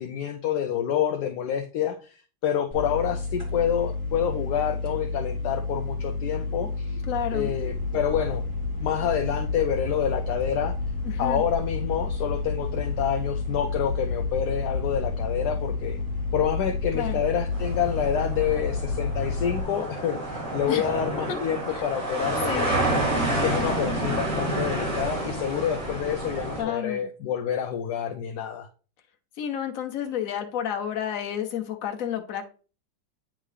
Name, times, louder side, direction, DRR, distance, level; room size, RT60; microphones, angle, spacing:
voice 1, 0.0-2.1 2.4-7.0 7.3-8.4 8.8-10.7 11.2-16.0 16.3-22.9 23.3-28.7, left 9 dB, 75° left, 1.1 m, -28 dB
sound 1, 2.7-19.6, left 3 dB, 15° right, 1.6 m, -30 dB
voice 2, 7.1-7.5 11.0-11.4 16.9-17.2 20.7-20.9 21.7-21.8 22.5-22.8 26.6-27.1 29.4-32.5, left 9 dB, 55° left, 1.1 m, -30 dB
sound 2, 17.5-26.6, right 1 dB, 40° right, 3.3 m, -29 dB
9.0 x 3.7 x 3.3 m
omnidirectional pair, 2.0 m